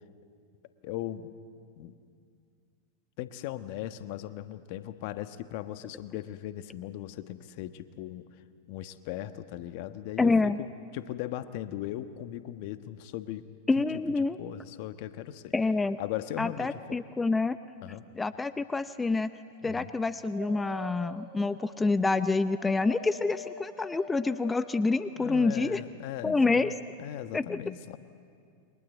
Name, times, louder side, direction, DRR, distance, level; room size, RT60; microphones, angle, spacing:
voice 1, 0.8-1.3 1.8-2.0 3.2-8.3 8.7-13.5 13.8-13.9 14.2-15.5 16.0-17.0 17.8-18.1 19.6-19.9 25.2-26.7 27.0-28.0, left 13 dB, 55° left, 11 dB, 1.2 m, -38 dB
voice 2, 10.2-10.6 13.7-14.4 15.5-16.0 16.4-17.6 18.1-19.3 19.6-25.8 26.2-26.7 27.3-27.6, left 3 dB, 15° left, 13 dB, 0.6 m, -27 dB
Dog, 19.4-25.0, right 1 dB, 35° right, 7.9 m, -46 dB
29.0 x 23.5 x 8.2 m, 2.3 s
hypercardioid pair, 100°, 0 cm